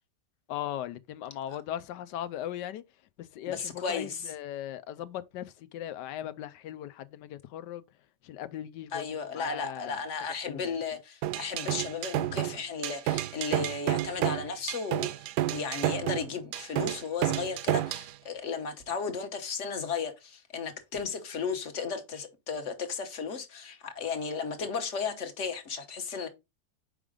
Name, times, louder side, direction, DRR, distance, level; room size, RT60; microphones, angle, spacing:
voice 1, 0.5-2.8 3.2-7.8 8.2-9.1 9.3-10.8, left 11 dB, 85° left, 1.3 m, -38 dB
voice 2, 3.5-4.2 8.9-15.1 15.5-26.3, left 5 dB, 50° left, 1.3 m, -34 dB
sound 1, 11.2-18.1, right 13 dB, 75° right, 1.1 m, -30 dB
5.9 x 5.1 x 3.6 m
omnidirectional pair, 1.8 m